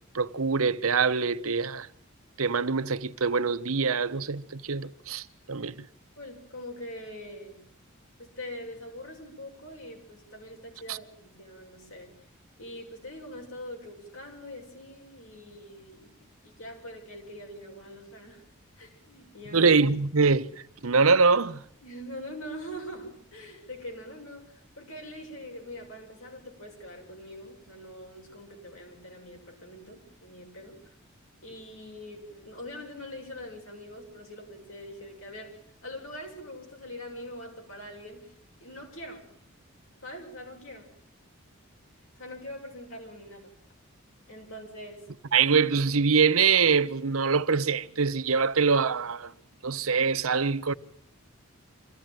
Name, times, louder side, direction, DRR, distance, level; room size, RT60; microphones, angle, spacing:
voice 1, 0.1-1.9 2.4-5.7 10.9-11.0 19.5-20.5 20.8-21.6 45.3-49.3 49.6-50.7, right 5 dB, 85° right, 1.0 m, -24 dB
voice 2, 6.2-7.6 8.2-12.1 12.6-18.4 18.8-19.7 21.8-30.9 31.4-38.3 38.6-39.2 40.0-40.9 42.2-43.5 44.3-45.0, left 1 dB, 75° left, 6.9 m, -43 dB
25.5 x 15.5 x 9.2 m
head